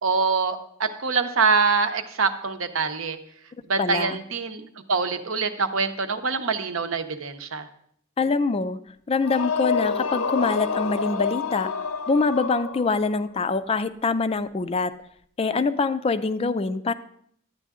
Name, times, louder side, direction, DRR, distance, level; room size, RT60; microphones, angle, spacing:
voice 1, 0.0-3.2 3.7-7.7, right 4 dB, 70° right, 8 dB, 0.8 m, -25 dB
voice 2, 3.8-4.2 8.2-8.8 9.1-11.7 12.1-14.9 15.4-16.9, left 4 dB, 30° left, 12 dB, 0.4 m, -24 dB
sound 1, 9.2-13.2, left 5 dB, 85° left, 0.8 m, -28 dB
11.0 x 9.1 x 3.6 m, 0.68 s
head